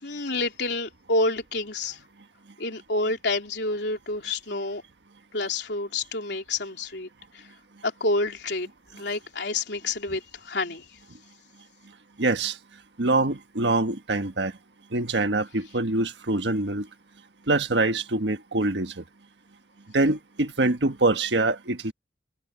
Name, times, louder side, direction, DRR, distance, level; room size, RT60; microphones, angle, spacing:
voice 1, 0.0-2.0 2.6-4.8 5.3-7.1 7.3-7.4 7.8-10.8, left 2 dB, 75° left, 3.3 m, -28 dB
voice 2, 12.2-12.6 13.0-14.5 14.9-16.9 17.5-19.0 19.9-21.9, right 2 dB, 75° right, 1.4 m, -24 dB
head